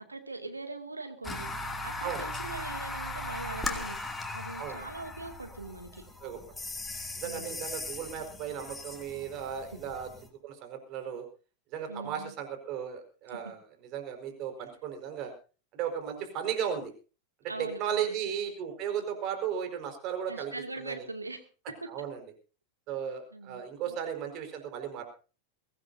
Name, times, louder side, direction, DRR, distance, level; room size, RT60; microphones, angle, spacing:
voice 1, 0.0-4.0 4.3-6.0 7.2-7.6 9.7-9.8 11.9-12.3 13.3-13.4 17.5-18.2 20.3-21.4 23.3-24.0, right 2 dB, 80° right, 6 dB, 2.5 m, -42 dB
sound 1, 1.2-10.3, left 2 dB, 10° left, 2.7 m, -38 dB
voice 2, 7.2-10.1 10.4-11.3 11.7-13.6 13.9-15.3 15.7-16.9 17.6-20.5 20.8-21.1 21.9-22.2 22.9-25.0, right 8 dB, 40° right, 6 dB, 4.8 m, -35 dB
23.0 x 17.0 x 2.8 m, 0.36 s
figure-of-eight pair, 90°, 0 cm